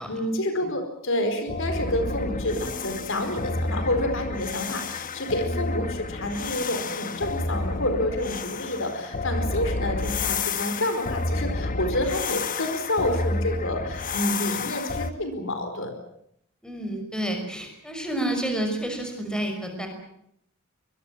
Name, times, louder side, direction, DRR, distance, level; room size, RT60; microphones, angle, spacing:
voice 1, 0.0-15.9, left 1 dB, 65° left, 7 dB, 4.6 m, -28 dB
sound 1, 1.5-15.1, left 3 dB, 40° left, 1.1 m, -30 dB
voice 2, 16.6-19.9, right 1 dB, 5° left, 4 dB, 5.7 m, -30 dB
24.5 x 22.0 x 7.5 m, 0.72 s
head